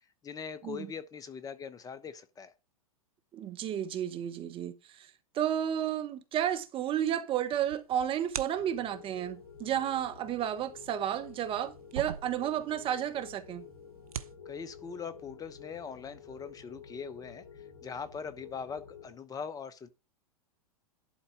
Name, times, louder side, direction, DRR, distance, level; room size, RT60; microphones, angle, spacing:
voice 1, 0.2-2.5 14.4-17.4 17.8-19.9, left 6 dB, 20° left, 0.9 m, -41 dB
voice 2, 3.3-5.1 5.3-13.6, right 10 dB, 30° right, 1.2 m, -32 dB
sound 1, 7.4-9.0 10.4-12.9 13.2-13.3 13.8-14.3, right 8 dB, 75° right, 0.8 m, -42 dB
sound 2, 8.5-19.1, left 7 dB, 45° left, 3.3 m, -51 dB
11.5 x 4.1 x 5.9 m
hypercardioid pair, 105°, 18 cm